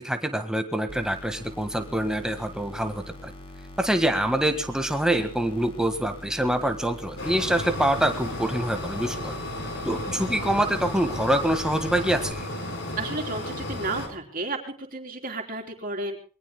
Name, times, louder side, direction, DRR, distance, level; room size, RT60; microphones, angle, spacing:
voice 1, 0.0-3.3 3.8-9.3 9.8-12.5, right 1 dB, 5° right, 7 dB, 1.6 m, -25 dB
sound 1, 0.9-12.3, left 1 dB, 25° left, 3.3 m, -43 dB
sound 2, 7.2-14.1, left 1 dB, 55° left, 4.5 m, -33 dB
voice 2, 13.0-16.2, right 2 dB, 40° right, 2 dB, 3.6 m, -32 dB
27.5 x 22.0 x 2.2 m, 0.37 s
head